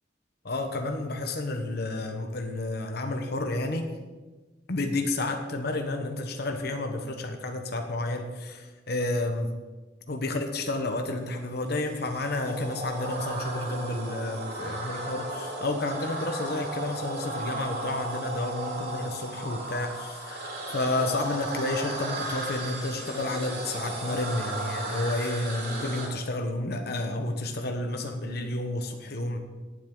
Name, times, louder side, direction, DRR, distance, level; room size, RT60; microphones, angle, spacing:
voice 1, 0.4-3.9 4.7-9.5 10.1-29.4, left 2 dB, 60° left, 5 dB, 1.1 m, -31 dB
sound 1, 11.8-26.1, right 2 dB, 60° right, 4.2 m, -35 dB
18.5 x 7.7 x 3.9 m, 1.3 s
head